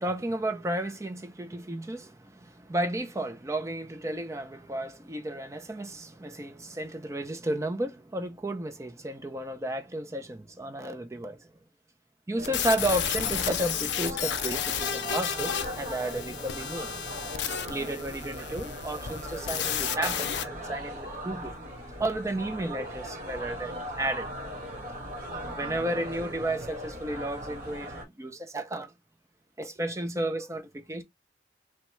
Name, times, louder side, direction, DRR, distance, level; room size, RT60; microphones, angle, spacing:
voice 1, 0.0-11.5 12.3-16.9 17.7-21.5 22.0-24.3 25.5-28.9 29.6-31.0, right 1 dB, 15° right, 0.4 m, -33 dB
sound 1, 12.4-20.4, left 9 dB, 80° left, 0.5 m, -32 dB
sound 2, 12.4-28.0, equal, 55° right, 1.4 m, -39 dB
3.0 x 2.3 x 3.0 m
head